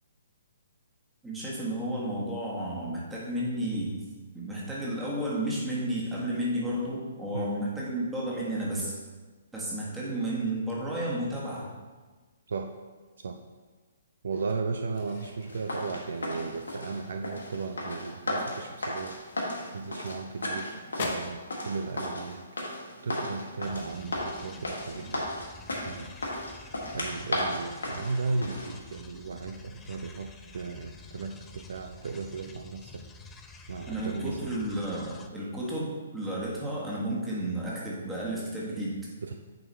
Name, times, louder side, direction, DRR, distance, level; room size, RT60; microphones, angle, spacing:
voice 1, 1.2-4.0 4.3-8.9 9.5-11.7 33.9-39.1, right 1 dB, 5° right, -6 dB, 1.6 m, -32 dB
voice 2, 14.2-19.2 19.7-22.5 22.7-25.3 25.8-26.2 26.9-33.0 33.7-34.6 39.2-39.3, right 4 dB, 55° right, 5 dB, 0.4 m, -35 dB
sound 1, 14.3-16.9 17.3-17.6 18.0-18.1 18.7-20.6 20.9-21.4, left 3 dB, 45° left, 0.9 m, -42 dB
sound 2, 15.5-28.7, left 1 dB, 70° left, 1.6 m, -35 dB
sound 3, 23.6-35.3, left 4 dB, 10° left, 0.4 m, -49 dB
9.2 x 4.8 x 3.2 m, 1.3 s
figure-of-eight pair, 125°, 0 cm